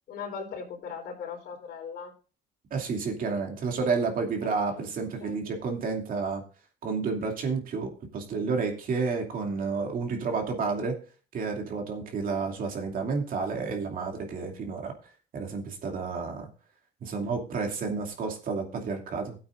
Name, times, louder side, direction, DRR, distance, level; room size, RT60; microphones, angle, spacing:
voice 1, 0.1-2.1 4.4-5.9, left 6 dB, 75° left, 1 dB, 4.1 m, -40 dB
voice 2, 2.7-6.4 6.8-11.0 11.3-14.9 15.3-16.5 17.0-19.4, right 4 dB, 55° right, 2 dB, 2.7 m, -30 dB
16.5 x 8.6 x 2.6 m, 0.36 s
cardioid pair, 110°, 17 cm